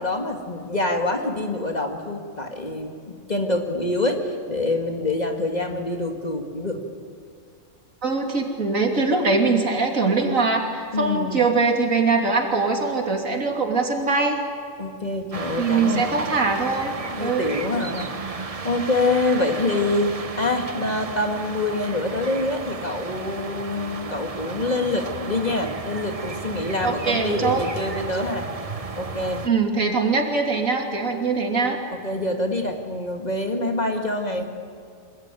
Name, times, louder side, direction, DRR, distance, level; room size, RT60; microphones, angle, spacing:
voice 1, 0.0-6.8 10.9-11.4 14.8-16.4 17.2-28.5 29.0-29.4 32.0-34.4, left 2 dB, 30° left, 3 dB, 2.3 m, -26 dB
voice 2, 8.0-14.4 15.6-16.9 17.2-17.5 26.8-27.6 29.4-31.8, right 4 dB, 90° right, 2 dB, 3.2 m, -22 dB
sound 1, 15.3-29.5, right 4 dB, 30° right, 0.9 m, -33 dB
26.0 x 20.5 x 9.3 m, 2.1 s
omnidirectional pair, 1.3 m